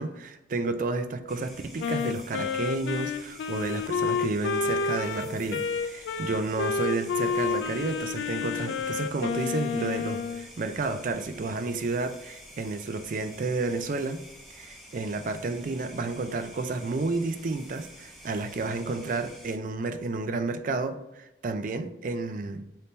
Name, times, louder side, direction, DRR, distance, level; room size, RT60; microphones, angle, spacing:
voice 1, 0.0-14.2 14.5-22.7, right 3 dB, 45° right, 9 dB, 0.4 m, -31 dB
sound 1, 1.3-19.5, equal, ahead, 0.8 m, -49 dB
Wind instrument woodwind instrument, 1.8-10.5, left 5 dB, 75° left, 0.3 m, -30 dB
3.5 x 2.8 x 3.9 m, 0.91 s
head